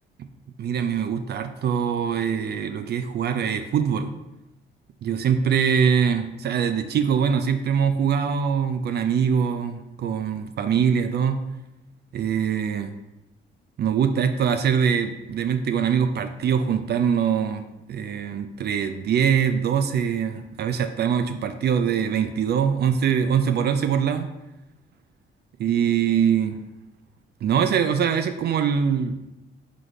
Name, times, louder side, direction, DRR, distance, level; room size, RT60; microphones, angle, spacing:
voice 1, 0.6-4.1 5.0-11.4 12.1-12.9 13.8-24.3 25.6-26.6 27.4-29.3, right 7 dB, 55° right, 8 dB, 0.4 m, -23 dB
4.7 x 4.1 x 5.0 m, 0.97 s
cardioid pair, 90°, 20 cm